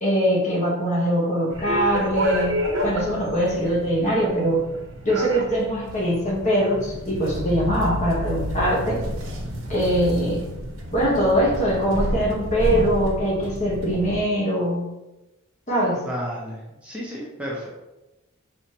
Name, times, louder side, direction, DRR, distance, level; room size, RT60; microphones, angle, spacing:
voice 1, 0.0-4.6 5.0-9.0 9.7-10.4 10.9-14.8 15.7-16.1, equal, 35° left, -4 dB, 1.3 m, -22 dB
sound 1, 1.5-14.2, equal, 65° right, 0.9 m, -30 dB
voice 2, 16.0-17.7, equal, 5° right, -6 dB, 0.8 m, -32 dB
5.6 x 3.1 x 2.9 m, 0.99 s
head